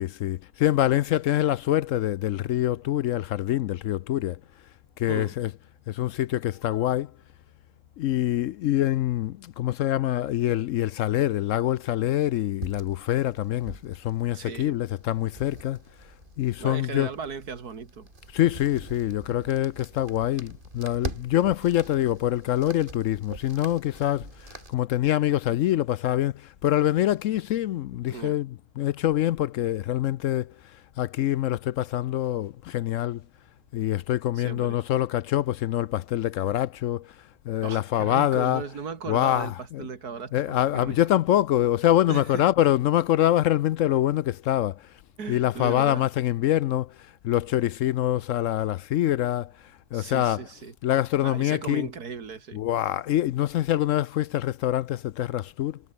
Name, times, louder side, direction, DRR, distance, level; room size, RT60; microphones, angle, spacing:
voice 1, 0.0-4.4 5.0-5.6 5.9-7.1 8.0-15.8 16.4-17.1 18.3-33.2 33.7-37.1 37.5-38.6 39.1-39.9 40.3-44.9 45.3-49.5 49.9-50.5 50.8-51.9 52.5-55.8, left 13 dB, 70° left, 0.8 m, -25 dB
sound 1, 12.6-24.7, right 3 dB, 35° right, 2.6 m, -43 dB
voice 2, 14.3-14.8 16.6-18.1 28.1-28.4 34.4-34.8 37.6-41.0 42.1-42.5 45.2-46.1 49.9-50.7 51.2-52.6, right 5 dB, 90° right, 2.7 m, -36 dB
omnidirectional pair, 1.6 m